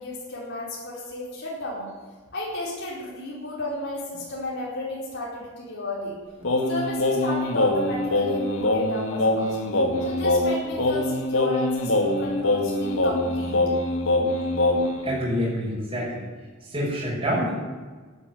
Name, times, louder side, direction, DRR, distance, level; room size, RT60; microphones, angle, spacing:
voice 1, 0.0-1.9 2.3-6.2 6.7-9.6 10.0-13.7, left 1 dB, 60° left, -5 dB, 4.5 m, -32 dB
Singing, 6.4-15.1, left 2 dB, 85° left, 2.0 m, -24 dB
voice 2, 14.7-16.3 16.6-17.5, equal, 25° right, -7 dB, 5.8 m, -28 dB
12.5 x 10.0 x 9.1 m, 1.4 s
head